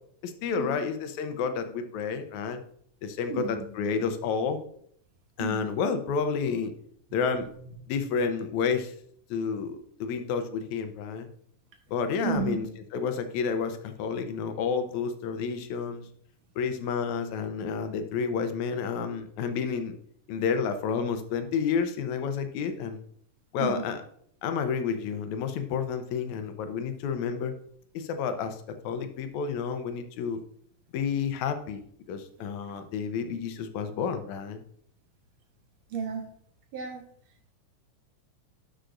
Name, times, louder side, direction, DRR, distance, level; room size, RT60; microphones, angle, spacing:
voice 1, 0.2-2.6 3.0-4.6 5.4-6.7 7.1-7.5 7.9-8.9 9.3-11.3 11.9-12.7 12.9-16.1 16.6-20.0 20.3-23.0 23.5-24.0 24.4-27.5 27.9-28.6 28.8-30.4 30.9-31.8 32.1-34.6, left 6 dB, 80° left, 8 dB, 2.1 m, -30 dB
voice 2, 3.3-3.7 5.4-5.7 7.1-7.2 12.2-12.6 23.6-23.8 35.9-36.2 36.7-37.0, right 6 dB, 70° right, 3 dB, 2.3 m, -32 dB
11.5 x 6.3 x 2.6 m, 0.64 s
omnidirectional pair, 3.4 m